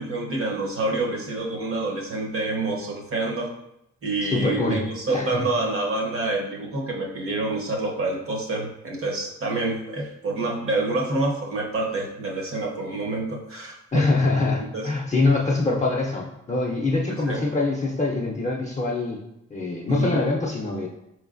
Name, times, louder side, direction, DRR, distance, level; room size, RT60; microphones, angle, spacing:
voice 1, 0.0-3.5 4.0-14.2 14.6-14.9 17.3-17.4 19.9-20.1, right 2 dB, 50° right, 0 dB, 0.8 m, -27 dB
voice 2, 4.2-4.8 5.1-5.4 13.9-19.2 19.5-20.9, left 3 dB, 25° left, -3 dB, 0.4 m, -24 dB
4.3 x 3.1 x 2.4 m, 0.84 s
wide cardioid pair, 120°, 29 cm